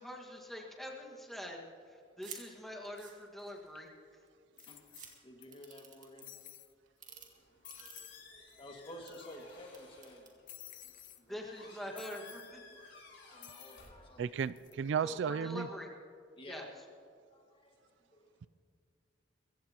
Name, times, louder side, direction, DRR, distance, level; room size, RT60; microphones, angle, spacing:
voice 1, 0.0-3.9 11.3-12.9 15.0-15.9 16.5-16.6, left 1 dB, ahead, -1 dB, 1.6 m, -45 dB
sound 1, 2.2-2.4 2.8-3.7 4.3-4.4 4.6-5.1 5.5-6.2 6.9-7.3 7.7-8.5 8.9-9.1 9.7-10.3, right 8 dB, 40° right, 2.0 m, -50 dB
Falling metal object, 3.8-3.9 4.6-5.5 5.7-5.8 6.2-6.7 7.2-7.3 7.6-8.2 8.5-8.6 8.8-9.6 10.5-11.2 12.0-12.5 13.4-13.9 14.4-14.7, left 12 dB, 45° left, 0.6 m, -53 dB
voice 2, 5.2-6.3 7.2-7.3 7.8-10.3 10.8-10.9 11.2-12.0 12.7-12.9 13.3-14.2 16.4-16.7 17.3-17.8 18.1-18.3, left 1 dB, 30° left, 1 dB, 1.9 m, -52 dB
Squeak, 7.1-14.6, left 4 dB, 65° left, 4.2 m, -57 dB
voice 3, 14.2-15.7, right 7 dB, 65° right, 17 dB, 0.3 m, -34 dB
24.0 x 15.5 x 2.9 m, 2.2 s
head